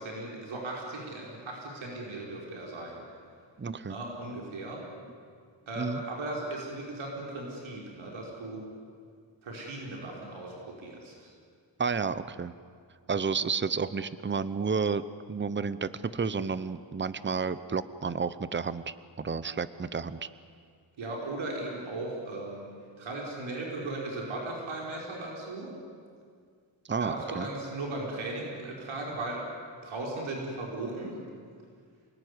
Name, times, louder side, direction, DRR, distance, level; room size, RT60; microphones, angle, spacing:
voice 1, 0.0-3.0 3.9-4.8 5.7-8.6 9.4-11.1 21.0-22.7 23.0-25.7 27.0-29.4 29.8-31.2, right 2 dB, 90° right, -2 dB, 5.3 m, -37 dB
voice 2, 3.6-4.0 5.8-6.0 11.8-12.5 13.1-20.3 26.9-27.5, right 5 dB, 25° right, 14 dB, 0.8 m, -31 dB
28.0 x 20.0 x 9.8 m, 2.1 s
wide cardioid pair, 110°, 46 cm